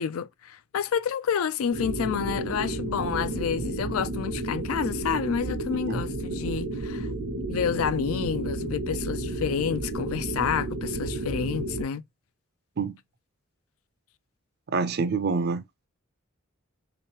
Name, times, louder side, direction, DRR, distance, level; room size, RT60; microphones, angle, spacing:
voice 1, 0.0-7.1 7.5-12.0, left 7 dB, 90° left, 0.4 m, -29 dB
sound 1, 1.7-11.8, right 2 dB, 75° right, 0.8 m, -32 dB
voice 2, 14.7-15.6, right 4 dB, 50° right, 0.5 m, -26 dB
3.2 x 3.0 x 3.0 m
head